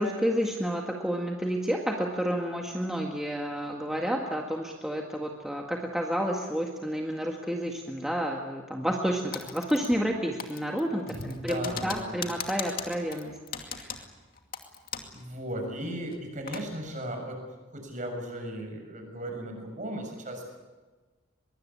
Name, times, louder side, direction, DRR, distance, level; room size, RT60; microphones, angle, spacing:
voice 1, 0.0-11.1 11.4-13.3 13.6-13.9, equal, ahead, 0 dB, 1.8 m, -30 dB
Typing, 9.3-10.1 10.4-15.2 15.5-15.6 16.1-16.7, left 7 dB, 45° left, 2.4 m, -39 dB
voice 2, 11.0-12.2 15.1-17.4 17.7-20.7, right 1 dB, 40° right, 3 dB, 6.9 m, -36 dB
23.5 x 22.5 x 8.5 m, 1.3 s
head